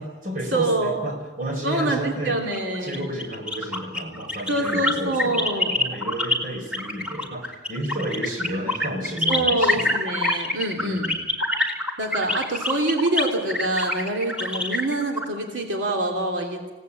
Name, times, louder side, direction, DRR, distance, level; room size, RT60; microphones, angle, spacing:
voice 1, 0.0-2.4 2.8-5.5 5.7-9.9 10.7-11.2, right 1 dB, 50° right, 3 dB, 5.1 m, -31 dB
voice 2, 0.5-1.0 1.6-3.1 4.5-5.8 9.3-11.1 12.0-16.7, right 2 dB, 85° right, 1 dB, 3.0 m, -25 dB
sound 1, 2.4-6.4 6.7-15.2, left 2 dB, 5° right, 3.1 m, -25 dB
27.5 x 18.0 x 8.7 m, 1.3 s
head